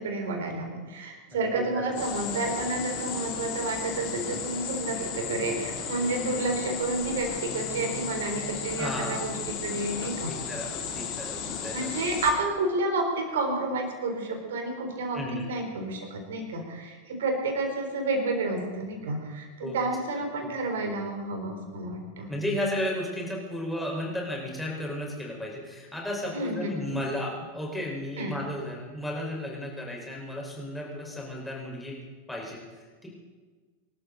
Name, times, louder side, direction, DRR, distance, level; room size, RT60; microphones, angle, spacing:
voice 1, 0.0-9.3 9.6-10.3 11.4-22.3 26.3-27.0 28.2-28.3, right 2 dB, 60° right, 4 dB, 3.6 m, -30 dB
voice 2, 1.6-1.9 8.8-9.3 10.0-12.0 15.1-15.5 19.6-19.8 20.4-20.5 22.3-32.0 32.3-33.1, left 1 dB, 5° left, -2 dB, 4.9 m, -34 dB
sound 1, 2.0-12.3, left 7 dB, 40° left, 2.7 m, -35 dB
25.5 x 13.0 x 4.0 m, 1.4 s
figure-of-eight pair, 90°, 0 cm